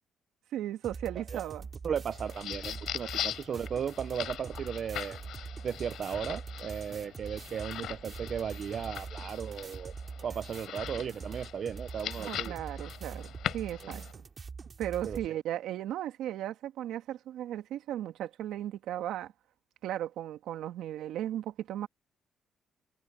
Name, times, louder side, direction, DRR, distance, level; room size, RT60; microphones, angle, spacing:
voice 1, 0.5-1.7 12.2-14.0 14.8-19.3 19.8-21.9, right 12 dB, 85° right, 2.2 m, -36 dB
sound 1, 0.8-15.3, right 5 dB, 40° right, 2.4 m, -44 dB
voice 2, 1.8-5.2 5.6-9.9 10.2-12.5 13.8-14.0 15.0-15.2, right 8 dB, 55° right, 0.7 m, -36 dB
sound 2, 2.1-14.1, left 11 dB, 75° left, 4.6 m, -41 dB
cardioid pair, 90°, 0 cm